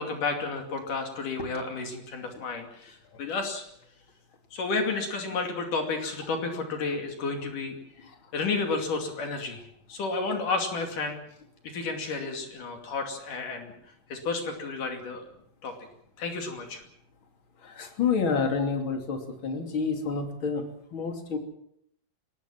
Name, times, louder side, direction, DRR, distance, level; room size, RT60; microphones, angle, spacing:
voice 1, 0.0-3.7 4.5-7.8 8.3-9.6 9.9-11.2 11.6-13.7 14.1-15.2 15.6-15.7 16.2-16.8, left 3 dB, 65° left, 4 dB, 4.1 m, -31 dB
voice 2, 17.6-21.4, left 5 dB, 35° left, 4 dB, 3.5 m, -29 dB
23.0 x 19.5 x 7.3 m, 0.72 s
omnidirectional pair, 4.1 m